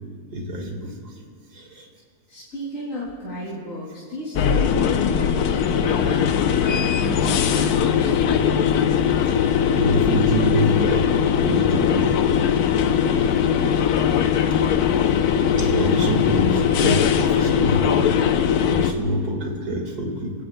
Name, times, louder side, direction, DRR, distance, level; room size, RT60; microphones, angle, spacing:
voice 1, 0.3-1.2 1.5-1.9 9.2-11.1 11.4-12.2 14.4-14.6 15.0-15.2 15.5-18.0 18.6-20.3, right 1 dB, 70° right, 2 dB, 2.3 m, -26 dB
voice 2, 2.3-6.3 6.6-8.7, equal, 50° left, -9 dB, 3.0 m, -33 dB
sound 1, 4.4-18.9, left 8 dB, 75° left, 1.2 m, -20 dB
22.5 x 16.5 x 2.2 m, 2.2 s
omnidirectional pair, 1.7 m